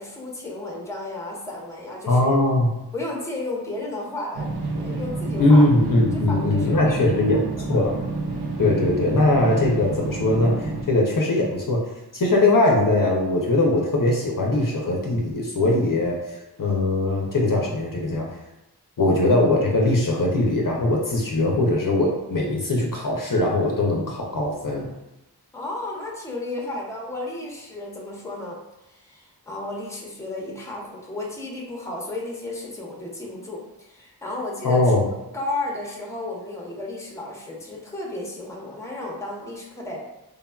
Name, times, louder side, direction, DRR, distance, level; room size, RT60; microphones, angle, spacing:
voice 1, 0.0-2.4 2.9-4.5 4.7-5.7 6.1-7.5 25.5-28.6 28.9-34.9 35.3-40.0, left 2 dB, 5° left, -2 dB, 0.7 m, -33 dB
voice 2, 2.1-2.8 5.4-7.4 7.7-8.0 8.6-11.8 12.1-16.2 16.6-18.3 19.0-24.9 34.6-35.0, left 2 dB, 50° left, -2 dB, 0.6 m, -20 dB
sound 1, 4.3-10.8, right 2 dB, 70° right, 0.6 m, -29 dB
3.4 x 2.2 x 2.2 m, 0.97 s
cardioid pair, 40°, 41 cm